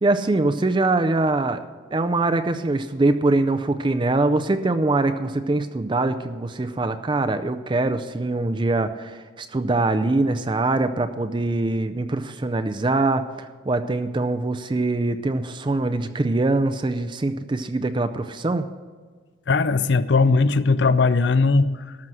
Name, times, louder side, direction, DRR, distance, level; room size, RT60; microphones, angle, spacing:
voice 1, 0.0-1.6 1.9-18.7, right 2 dB, 25° right, 10 dB, 0.4 m, -23 dB
voice 2, 19.5-22.0, left 4 dB, 65° left, 15 dB, 0.5 m, -19 dB
13.0 x 6.2 x 7.6 m, 1.5 s
head